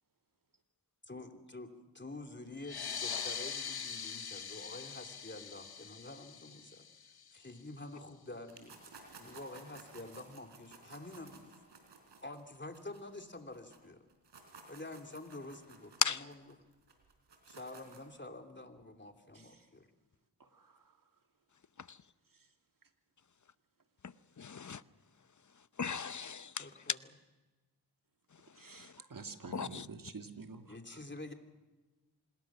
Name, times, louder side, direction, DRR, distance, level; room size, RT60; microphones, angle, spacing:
voice 1, 1.1-6.8 7.3-8.8 9.2-11.6 12.2-14.0 14.7-16.3 17.5-19.9 26.6-27.0 30.7-31.3, left 2 dB, 25° left, 4 dB, 3.0 m, -48 dB
sound 1, 2.6-7.7, left 7 dB, 60° left, 1.2 m, -43 dB
sound 2, 8.5-13.8 14.1-18.2, right 4 dB, 85° right, 3.9 m, -56 dB
voice 2, 20.4-20.8 28.6-30.8, right 3 dB, 50° right, 5 dB, 2.5 m, -48 dB
voice 3, 24.0-24.8 25.8-26.7 28.7-28.9 29.5-29.9, left 6 dB, 45° left, 15 dB, 0.8 m, -36 dB
26.5 x 20.5 x 6.3 m, 1.2 s
cardioid pair, 45°, 41 cm